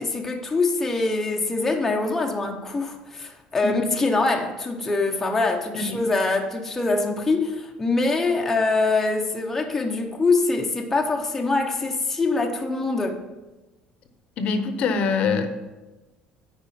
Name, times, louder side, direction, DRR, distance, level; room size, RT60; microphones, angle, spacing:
voice 1, 0.0-13.2, left 3 dB, 10° left, 1 dB, 0.7 m, -24 dB
voice 2, 14.4-15.5, left 4 dB, 45° left, 8 dB, 0.8 m, -24 dB
9.2 x 4.8 x 5.7 m, 1.1 s
cardioid pair, 170°, 3 cm